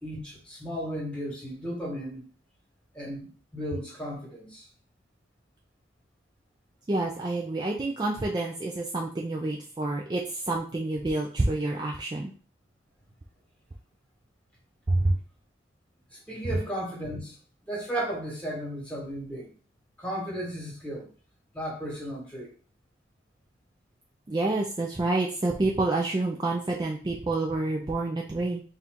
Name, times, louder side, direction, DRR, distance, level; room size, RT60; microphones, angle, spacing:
voice 1, 0.0-2.2 2.9-4.6 16.1-17.3 17.7-19.5 20.0-21.1 21.5-22.5, equal, 5° left, -3 dB, 1.5 m, -35 dB
voice 2, 6.9-12.3 14.9-15.2 24.3-28.6, right 2 dB, 25° right, -1 dB, 0.3 m, -28 dB
4.2 x 2.4 x 3.5 m, 0.40 s
head